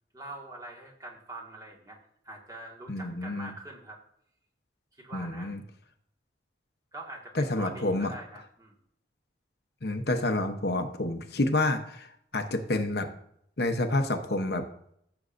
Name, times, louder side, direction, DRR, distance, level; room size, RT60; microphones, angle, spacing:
voice 1, 0.1-2.0 2.2-4.0 5.0-5.5 6.9-8.8, right 2 dB, 20° right, -1 dB, 1.8 m, -44 dB
voice 2, 2.9-3.5 5.1-5.6 7.3-8.1 9.8-12.1 12.3-13.1 13.6-14.6, left 2 dB, 60° left, 6 dB, 0.9 m, -28 dB
14.5 x 7.0 x 2.6 m, 0.69 s
head